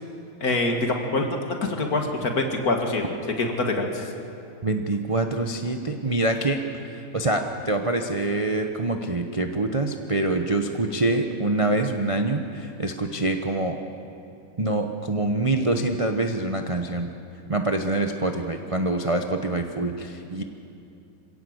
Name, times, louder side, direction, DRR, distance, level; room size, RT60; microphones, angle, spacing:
voice 1, 0.4-1.4 1.7-3.0 3.4-4.1, left 2 dB, 45° left, 3 dB, 2.2 m, -25 dB
voice 2, 4.6-6.6 6.9-13.8 14.6-17.1 17.5-20.4, right 2 dB, 40° right, 4 dB, 0.4 m, -25 dB
26.0 x 17.0 x 8.0 m, 2.7 s
omnidirectional pair, 2.3 m